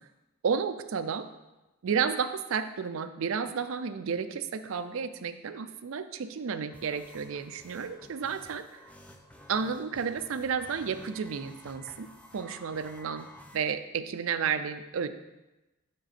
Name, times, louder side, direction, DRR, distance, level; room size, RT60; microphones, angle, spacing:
voice 1, 0.4-1.3 1.8-8.8 9.5-12.1 12.3-13.3 13.5-15.2, right 6 dB, 65° right, 10 dB, 0.4 m, -32 dB
sound 1, 6.7-13.6, equal, 5° left, 0.4 m, -52 dB
6.4 x 5.3 x 4.2 m, 1.0 s
head